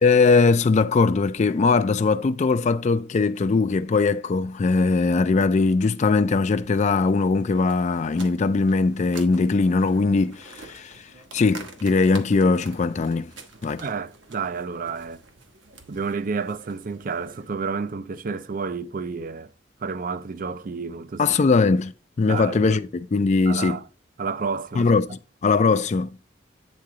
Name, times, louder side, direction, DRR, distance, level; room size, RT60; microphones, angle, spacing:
voice 1, 0.0-13.3 13.6-13.8 21.2-21.9 22.2-23.8 24.8-26.1, left 4 dB, 40° left, 0.4 m, -20 dB
sound 1, 6.6-17.5, right 3 dB, 80° right, 1.4 m, -47 dB
voice 2, 13.8-15.2 15.9-19.5 19.8-21.2 22.3-22.8 23.5-23.9 24.2-24.9, right 5 dB, 45° right, 0.5 m, -30 dB
8.8 x 3.8 x 4.8 m
head